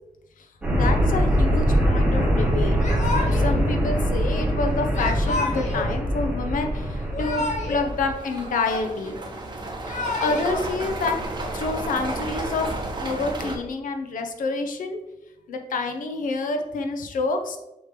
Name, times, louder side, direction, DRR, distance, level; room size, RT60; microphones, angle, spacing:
sound 1, 0.6-8.1, equal, 10° right, 2.3 m, -23 dB
voice 1, 0.7-2.8 3.3-9.2 9.8-11.2 11.5-12.7 13.0-15.0 15.5-17.6, left 3 dB, 80° left, 6 dB, 0.9 m, -28 dB
Yell / Crying sobbing, 2.8-3.6 4.9-5.9 7.0-7.9 8.2-9.1 9.7-10.6, left 2 dB, 60° left, 1.5 m, -30 dB
sound 2, 6.8-6.9 7.4-13.6, right 2 dB, 35° right, 1.2 m, -32 dB
6.2 x 5.2 x 3.3 m, 0.93 s
cardioid pair, 90°, 14 cm